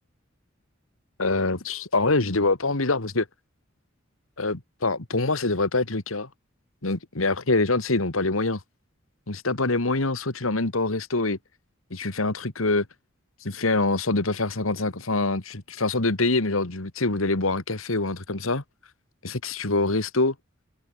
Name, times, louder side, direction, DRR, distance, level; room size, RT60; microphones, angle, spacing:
voice 1, 1.2-3.3 4.4-6.3 6.8-8.6 9.3-11.4 11.9-12.9 13.4-18.6 19.2-20.3, left 3 dB, 90° left, 2.1 m, -25 dB
head